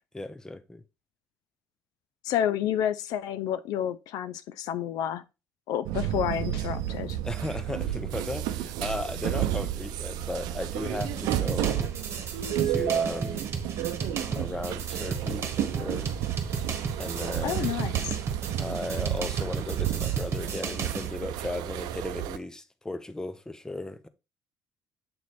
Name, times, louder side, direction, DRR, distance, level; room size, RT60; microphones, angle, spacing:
voice 1, 0.1-0.8 7.2-11.9 12.6-13.5 14.3-16.3 17.0-17.7 18.6-24.1, left 2 dB, 10° left, 0.7 m, -36 dB
voice 2, 2.2-5.2 5.7-7.2 17.4-18.2, left 10 dB, 75° left, 0.5 m, -30 dB
sound 1, 5.8-22.4, right 12 dB, 75° right, 0.6 m, -31 dB
sound 2, 11.0-21.1, right 5 dB, 40° right, 1.3 m, -34 dB
7.8 x 3.1 x 4.1 m
cardioid pair, 105°, 7 cm